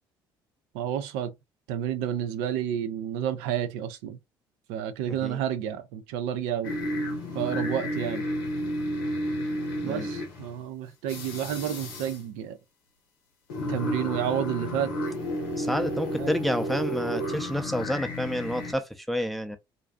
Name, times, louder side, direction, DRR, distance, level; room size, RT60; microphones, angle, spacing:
voice 1, 0.7-1.3 1.7-4.2 4.7-6.8 7.3-8.3 9.8-12.6 13.7-14.9 16.2-16.3, right 10 dB, 70° right, 0.4 m, -30 dB
sound 1, 6.6-10.6 11.1-12.2 13.5-18.7, equal, 80° left, 0.7 m, -32 dB
voice 2, 15.5-19.6, equal, ahead, 0.5 m, -29 dB
2.5 x 2.3 x 2.3 m
hypercardioid pair, 55°, 12 cm